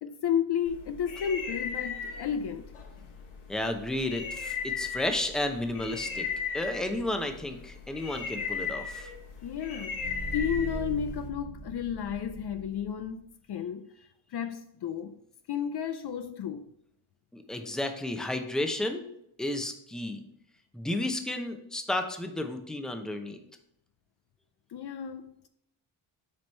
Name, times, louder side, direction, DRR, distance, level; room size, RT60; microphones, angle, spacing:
voice 1, 0.0-2.7 9.4-10.1 10.3-13.9 14.3-15.2 15.5-16.7 24.7-25.5, left 8 dB, 55° left, 0.5 m, -32 dB
sound 1, 0.7-11.3, left 6 dB, 85° left, 1.3 m, -37 dB
voice 2, 3.5-6.2 6.5-9.1 17.3-19.0 19.4-20.2 20.7-23.4, left 1 dB, ahead, 0.6 m, -32 dB
sound 2, 10.0-13.1, right 3 dB, 50° right, 1.5 m, -40 dB
7.6 x 3.0 x 5.3 m
cardioid pair, 95°, 48 cm